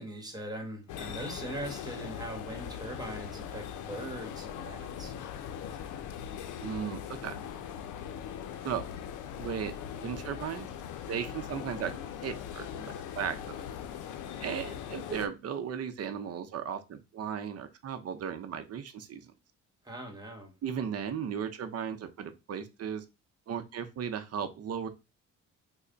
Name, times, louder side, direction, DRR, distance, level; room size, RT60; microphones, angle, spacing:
voice 1, 0.0-5.1 19.8-20.5, right 1 dB, 15° right, 3 dB, 1.3 m, -41 dB
sound 1, 0.9-15.3, left 9 dB, 80° left, 0.5 m, -40 dB
voice 2, 6.6-7.4 8.6-8.8 9.4-9.7 10.0-10.7 11.1-11.9 12.2-13.6 14.4-19.3 20.6-23.0 23.5-24.9, right 8 dB, 55° right, 9 dB, 0.6 m, -36 dB
3.2 x 2.1 x 3.8 m, 0.26 s
cardioid pair, 90°, 30 cm